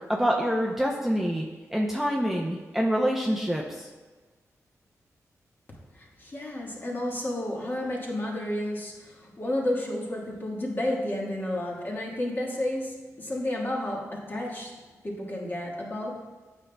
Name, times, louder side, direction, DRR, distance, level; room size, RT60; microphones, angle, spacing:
voice 1, 0.0-3.9, equal, 5° right, -2 dB, 0.5 m, -26 dB
voice 2, 5.9-14.7 15.0-16.2, left 1 dB, 35° left, -2 dB, 1.3 m, -31 dB
8.8 x 5.3 x 2.2 m, 1.3 s
cardioid pair, 80°, 6 cm